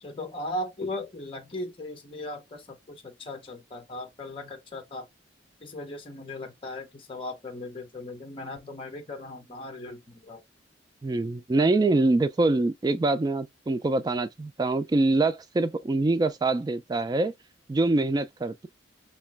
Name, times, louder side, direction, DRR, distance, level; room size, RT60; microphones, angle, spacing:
voice 1, 0.0-5.1 5.6-10.4, left 1 dB, 30° left, 0.8 m, -37 dB
voice 2, 11.0-17.3 17.7-18.7, right 2 dB, 20° right, 0.3 m, -24 dB
3.3 x 2.9 x 3.3 m
head